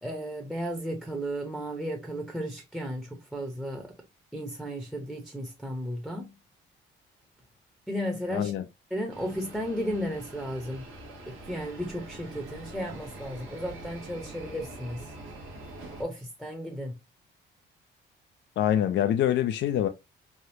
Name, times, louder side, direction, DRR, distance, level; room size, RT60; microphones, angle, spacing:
voice 1, 0.0-3.9 4.3-6.3 7.9-8.5 8.9-10.9 11.3-15.0 16.0-17.0, equal, ahead, 0.7 m, -34 dB
voice 2, 8.3-8.6 18.6-19.9, left 11 dB, 65° left, 0.4 m, -25 dB
sound 1, 9.1-16.0, right 2 dB, 90° right, 1.0 m, -44 dB
3.4 x 2.3 x 2.7 m
cardioid pair, 90°, 20 cm